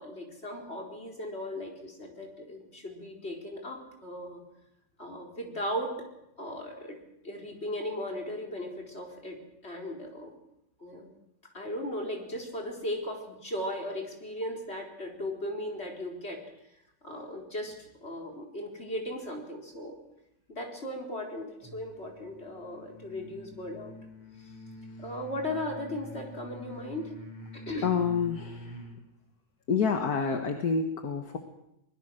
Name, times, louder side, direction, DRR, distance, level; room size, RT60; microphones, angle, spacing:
voice 1, 0.0-4.4 5.0-6.0 6.4-7.0 7.2-10.4 10.8-11.1 11.5-16.4 17.0-20.0 20.5-23.9 24.4-24.5 25.0-27.1 27.5-27.9, left 1 dB, 40° left, 0 dB, 4.6 m, -37 dB
sound 1, 21.6-29.0, equal, 15° right, 5.3 m, -46 dB
voice 2, 27.8-28.9 29.7-31.4, left 5 dB, 65° left, 5 dB, 2.0 m, -28 dB
24.0 x 21.0 x 6.4 m, 0.83 s
omnidirectional pair, 1.8 m